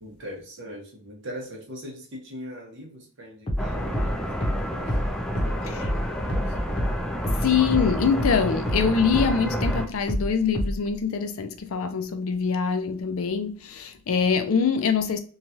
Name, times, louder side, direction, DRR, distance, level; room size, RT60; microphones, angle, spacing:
voice 1, 0.0-5.0 5.4-6.6, equal, 60° right, 0.9 m, -41 dB
sound 1, 3.5-8.4 8.7-10.9, equal, 30° left, 0.8 m, -27 dB
sound 2, 3.6-9.9, equal, 5° left, 0.3 m, -30 dB
voice 2, 7.4-15.2, left 6 dB, 70° left, 0.4 m, -24 dB
3.1 x 2.3 x 2.7 m
head